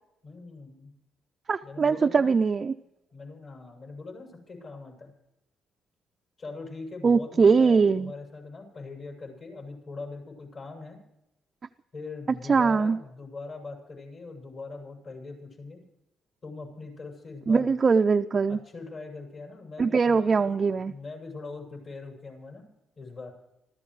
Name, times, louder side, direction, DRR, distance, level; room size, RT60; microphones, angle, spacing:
voice 1, 0.2-0.9 1.6-2.4 3.1-5.1 6.4-11.0 11.9-15.8 16.4-17.7 18.5-20.5 20.9-22.6 23.0-23.3, left 3 dB, 50° left, 0 dB, 6.8 m, -41 dB
voice 2, 1.5-2.7 7.0-8.1 12.5-13.0 17.5-18.6 19.8-20.9, right 5 dB, 40° right, 5 dB, 0.4 m, -22 dB
26.5 x 14.5 x 3.2 m, 0.89 s
cardioid pair, 90°, 0 cm